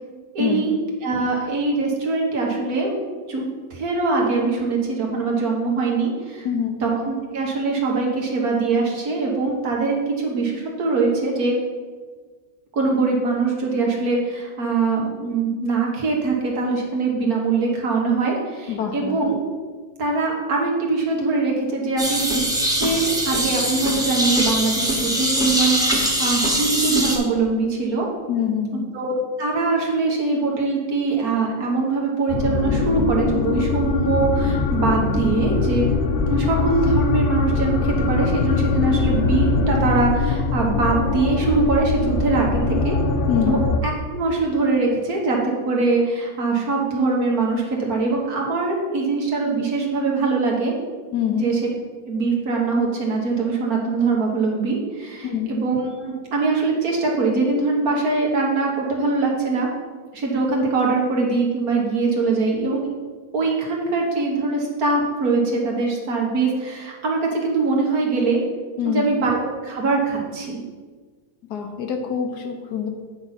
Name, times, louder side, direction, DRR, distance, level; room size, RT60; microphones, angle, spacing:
voice 1, 0.3-3.0 3.3-6.5 6.8-11.5 12.7-19.4 20.0-28.1 28.9-29.1 29.4-35.9 36.3-43.0 43.4-50.7 51.3-51.6 52.1-59.7 60.1-62.8 63.3-68.4 68.8-70.6, right 3 dB, 65° right, -1 dB, 1.7 m, -22 dB
voice 2, 6.4-6.8 18.7-19.2 28.3-28.9 43.3-43.7 51.1-51.4 55.2-55.5 68.8-69.1 71.5-72.9, left 8 dB, 80° left, 4 dB, 1.5 m, -25 dB
sound 1, 22.0-27.2, equal, 5° right, 1.1 m, -22 dB
sound 2, 32.3-43.8, left 4 dB, 65° left, 0.5 m, -22 dB
9.1 x 4.0 x 5.8 m, 1.4 s
omnidirectional pair, 1.7 m